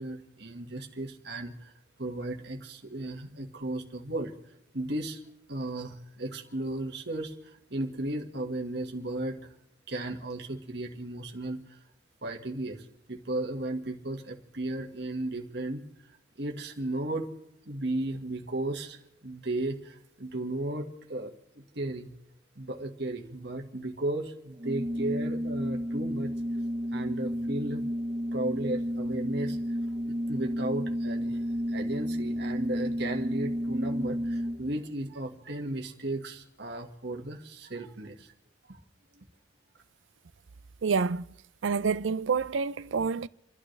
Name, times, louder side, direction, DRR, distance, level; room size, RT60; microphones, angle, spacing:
voice 1, 0.0-1.7 2.0-4.3 4.7-5.2 5.5-9.5 9.9-11.8 12.2-15.8 16.4-17.3 17.7-22.1 22.6-26.3 26.9-27.9 28.3-29.6 30.1-38.3 38.7-38.8 39.1-39.2, right 1 dB, 60° right, 1.7 m, -35 dB
Organ, 24.6-34.8, equal, 35° right, 1.0 m, -32 dB
voice 2, 40.8-41.2 41.6-43.3, right 5 dB, 85° right, 0.5 m, -27 dB
29.5 x 12.0 x 3.3 m
head